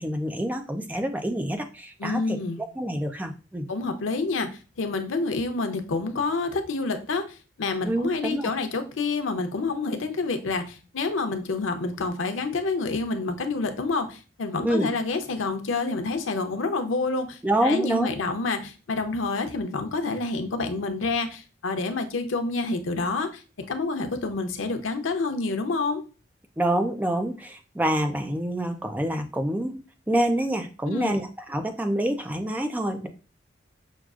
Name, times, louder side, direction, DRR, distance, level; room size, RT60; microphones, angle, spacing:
voice 1, 0.0-2.4 2.8-3.7 7.8-8.5 14.6-14.9 17.4-18.1 26.6-29.7 30.1-33.1, right 1 dB, 10° right, 5 dB, 0.4 m, -27 dB
voice 2, 2.0-2.6 3.7-23.4 23.7-26.0 30.9-31.2, left 3 dB, 90° left, 7 dB, 0.6 m, -28 dB
6.2 x 2.4 x 2.4 m, 0.34 s
head